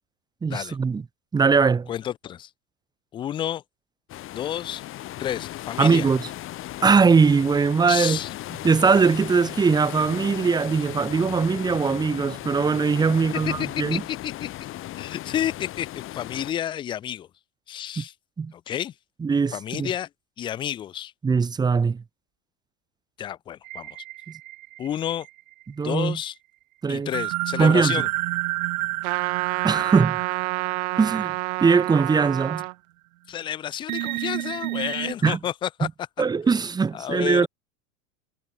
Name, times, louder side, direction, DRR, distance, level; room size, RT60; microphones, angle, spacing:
voice 1, 0.4-1.0 1.3-1.9 5.8-6.3 6.8-8.2 8.6-14.0 18.0-18.1 18.4-18.5 19.2-19.9 21.2-22.0 25.7-26.2 26.8-27.1 27.6-27.9 29.6-30.2 31.0-31.3 31.6-32.6 35.2-35.4 35.8-35.9 36.2-37.5, right 5 dB, 10° right, 0.8 m, -21 dB
voice 2, 1.9-2.5 3.1-3.6 4.3-4.8 5.2-6.1 7.9-8.3 13.9-14.5 15.0-17.3 17.7-18.1 18.5-18.9 19.5-20.1 20.4-21.1 23.2-23.9 24.8-25.3 25.8-26.4 26.9-28.1 33.3-35.9 36.9-37.5, left 11 dB, 10° left, 0.4 m, -30 dB
sound 1, 4.1-16.5, left 15 dB, 30° left, 1.2 m, -36 dB
sound 2, 23.6-25.6 27.1-32.0 32.5-32.6 33.9-35.1, right 18 dB, 70° right, 1.1 m, -31 dB
Trumpet, 29.0-32.7, right 27 dB, 50° right, 0.7 m, -28 dB
supercardioid pair, 135°, 43 cm